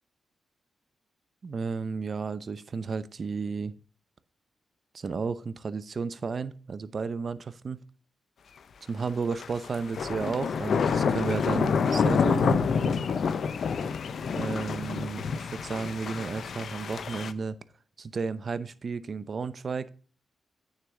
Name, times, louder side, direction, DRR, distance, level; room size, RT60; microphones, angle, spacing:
voice 1, 1.4-3.7 4.9-7.8 8.8-12.6 14.3-17.6 18.0-19.9, right 5 dB, 55° right, 0.7 m, -33 dB
sound 1, 9.3-17.3, left 6 dB, 70° left, 0.6 m, -28 dB
9.2 x 6.6 x 3.7 m
cardioid pair, 65°, 0 cm